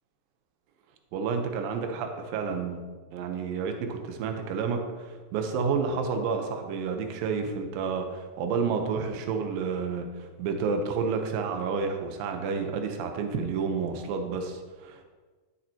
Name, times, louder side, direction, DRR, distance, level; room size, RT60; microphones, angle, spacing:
voice 1, 1.1-2.8 3.1-15.1, right 5 dB, 75° right, 5 dB, 2.5 m, -30 dB
12.0 x 7.3 x 2.9 m, 1.4 s
omnidirectional pair, 4.3 m